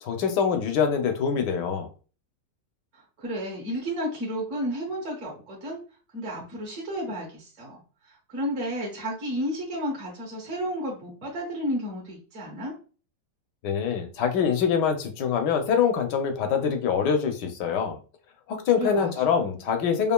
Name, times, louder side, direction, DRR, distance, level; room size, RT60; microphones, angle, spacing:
voice 1, 0.0-1.9 13.6-18.0 18.5-20.1, left 7 dB, 80° left, 1.3 m, -24 dB
voice 2, 3.2-5.8 6.1-7.8 8.1-12.7 18.8-19.4, equal, 50° right, 1.3 m, -32 dB
5.4 x 2.4 x 2.2 m
omnidirectional pair, 1.8 m